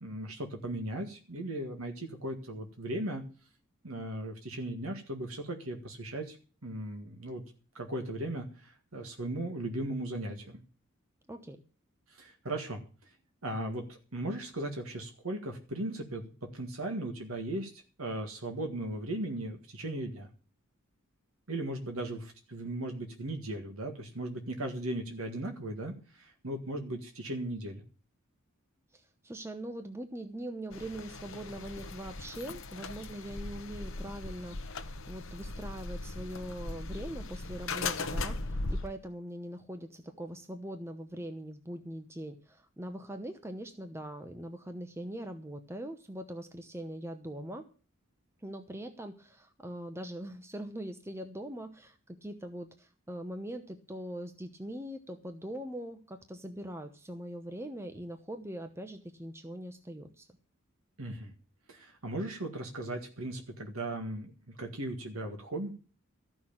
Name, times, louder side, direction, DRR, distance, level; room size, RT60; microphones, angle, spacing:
voice 1, 0.0-3.2 3.8-6.4 6.6-7.4 7.8-10.6 12.1-12.8 13.4-20.3 21.5-27.8 61.0-61.3 61.7-64.3 64.6-65.7, right 1 dB, 90° right, 4 dB, 1.9 m, -37 dB
voice 2, 11.3-11.6 28.9-47.6 48.4-60.3, right 1 dB, 10° right, 7 dB, 0.9 m, -42 dB
sound 1, 30.7-38.9, left 3 dB, 65° left, 1.0 m, -38 dB
14.0 x 6.2 x 8.7 m, 0.38 s
head